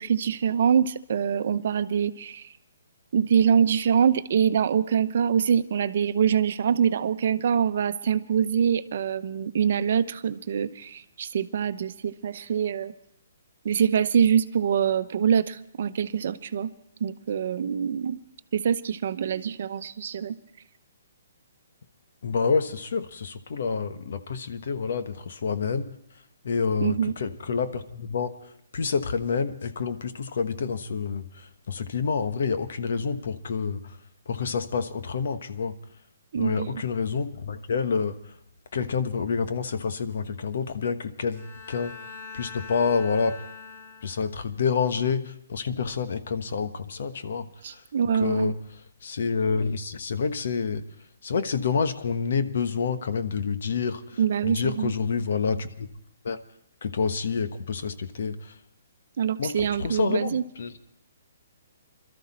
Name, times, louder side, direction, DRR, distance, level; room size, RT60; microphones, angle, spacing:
voice 1, 0.0-2.5 3.1-12.9 13.6-16.7 17.0-18.2 18.5-20.4 26.8-27.1 36.3-36.7 47.6-48.5 54.2-54.9 59.2-60.4, right 8 dB, 55° right, 11 dB, 0.8 m, -24 dB
voice 2, 22.2-25.9 26.4-28.3 28.7-34.0 34.3-35.7 36.3-38.2 38.7-41.9 42.3-43.4 44.0-47.8 48.2-48.6 49.0-50.8 51.2-55.9 56.2-56.4 56.8-58.5 59.4-60.9, left 5 dB, 65° left, 10 dB, 1.2 m, -28 dB
Bowed string instrument, 41.3-44.5, left 5 dB, 30° left, 4.1 m, -43 dB
22.0 x 13.5 x 4.3 m, 0.78 s
hypercardioid pair, 155°, 0 cm